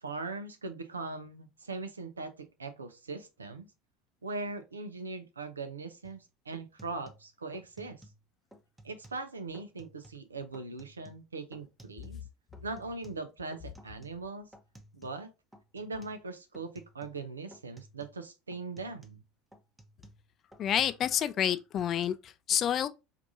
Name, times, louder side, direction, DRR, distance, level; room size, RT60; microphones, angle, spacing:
voice 1, 0.0-3.7 4.2-8.0 8.8-12.2 12.6-14.5 14.9-15.3 15.7-19.2, right 3 dB, 90° right, 0.5 m, -40 dB
sound 1, 6.0-6.2 6.5-8.2 8.5-9.3 9.5-10.2 10.5-12.3 12.5-15.3 15.5-16.2 16.5-17.3 17.5-18.2 18.5-21.2 21.5-22.1, right 1 dB, 5° right, 0.8 m, -56 dB
voice 2, 20.6-22.9, left 10 dB, 45° left, 0.3 m, -29 dB
4.6 x 2.5 x 2.5 m
hypercardioid pair, 75°, 0 cm